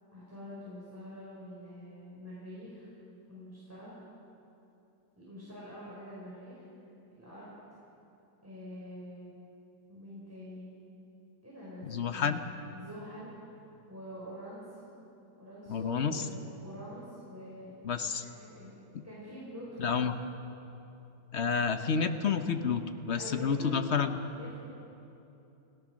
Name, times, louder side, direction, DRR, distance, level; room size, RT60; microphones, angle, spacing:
voice 1, 0.1-2.9 3.3-3.9 5.2-6.6 7.1-7.5 8.4-9.3 9.9-10.8 11.4-13.5 13.9-14.9 15.4-17.8 18.2-18.7 19.0-19.9 23.1-23.8 24.3-24.6, equal, 5° right, -8 dB, 5.0 m, -46 dB
voice 2, 11.8-12.4 15.7-16.2 17.8-18.2 19.8-20.2 21.3-24.1, left 6 dB, 50° left, 8 dB, 0.9 m, -29 dB
29.5 x 17.0 x 6.3 m, 2.9 s
omnidirectional pair, 2.1 m